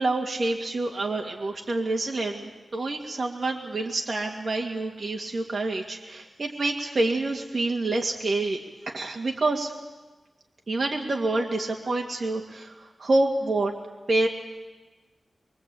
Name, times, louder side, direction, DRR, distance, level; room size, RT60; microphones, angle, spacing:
voice 1, 0.0-8.6 8.9-9.7 10.7-12.7 13.0-13.7 14.1-14.3, right 2 dB, 50° right, 1 dB, 2.2 m, -27 dB
24.5 x 23.5 x 8.6 m, 1.2 s
wide cardioid pair, 120°, 0 cm